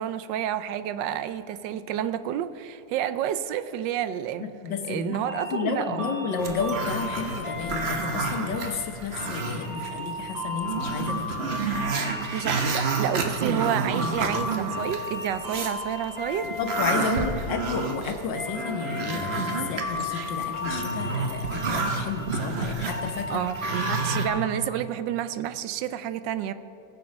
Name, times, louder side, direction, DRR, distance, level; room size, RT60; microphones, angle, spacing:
voice 1, 0.0-4.5 4.9-6.1 12.3-16.6 16.9-17.3 23.3-26.5, right 10 dB, 85° right, 13 dB, 1.3 m, -30 dB
voice 2, 4.4-5.2 5.5-11.5 16.6-23.4, left 5 dB, 85° left, 5 dB, 1.7 m, -31 dB
sound 1, 5.3-24.3, left 3 dB, 65° right, 2.9 m, -36 dB
Growling, 6.4-9.9 10.2-10.3 10.6-15.8 16.2-24.3, right 4 dB, 45° right, 1.0 m, -30 dB
19.5 x 6.9 x 5.2 m, 2.9 s
omnidirectional pair, 1.9 m